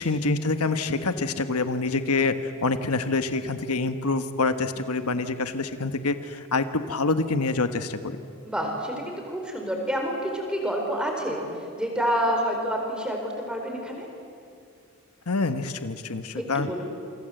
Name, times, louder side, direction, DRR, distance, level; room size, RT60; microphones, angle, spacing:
voice 1, 0.0-8.2 15.3-16.7, left 3 dB, 85° left, 9 dB, 1.3 m, -26 dB
voice 2, 8.4-14.1 16.4-16.8, equal, 5° right, 1 dB, 4.4 m, -28 dB
28.0 x 25.5 x 7.9 m, 2.4 s
head